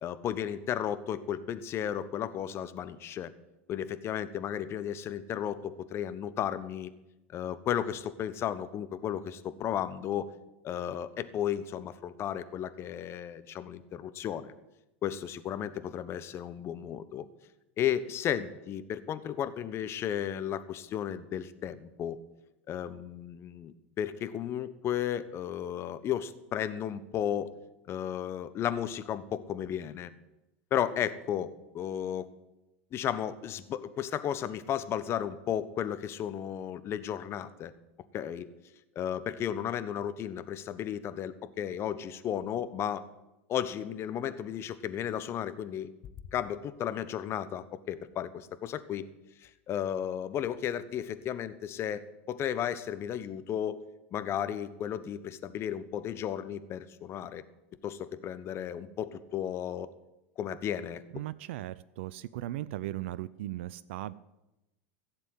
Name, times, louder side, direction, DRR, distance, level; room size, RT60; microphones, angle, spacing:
voice 1, 0.0-3.3 3.7-6.9 7.3-10.3 10.6-14.5 15.0-17.3 17.8-22.2 22.7-27.5 27.9-30.1 30.7-32.3 32.9-37.7 38.1-38.5 38.9-43.0 43.5-45.9 46.3-49.1 49.4-53.8 54.1-57.4 57.8-59.9 60.4-61.0, left 10 dB, 40° left, 13 dB, 1.1 m, -34 dB
voice 2, 61.1-64.1, right 15 dB, 65° right, 17 dB, 0.5 m, -37 dB
15.5 x 7.4 x 9.6 m, 0.95 s
hypercardioid pair, 90°, 7 cm